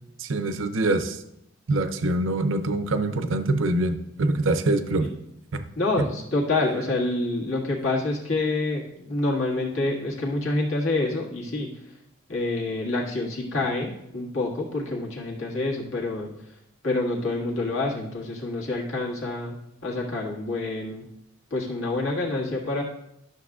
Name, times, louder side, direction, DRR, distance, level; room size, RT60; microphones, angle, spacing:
voice 1, 0.2-1.2 1.7-5.1 5.5-5.6 6.0-6.1, right 2 dB, 65° right, 9 dB, 0.6 m, -24 dB
voice 2, 5.7-11.7 12.3-16.3 16.8-19.5 19.8-21.1 21.5-22.8, left 2 dB, 75° left, -3 dB, 1.7 m, -27 dB
11.5 x 6.4 x 2.4 m, 0.79 s
head